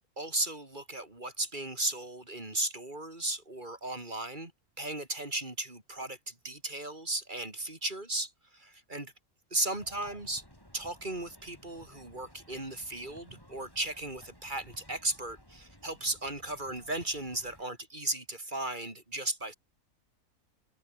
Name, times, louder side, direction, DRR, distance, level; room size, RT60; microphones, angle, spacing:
voice 1, 0.2-4.5 4.8-9.1 9.5-10.4 10.7-19.5, right 2 dB, 30° right, 3.9 m, -36 dB
sound 1, 9.7-17.6, equal, 15° left, 8.0 m, -56 dB
omnidirectional pair, 1.6 m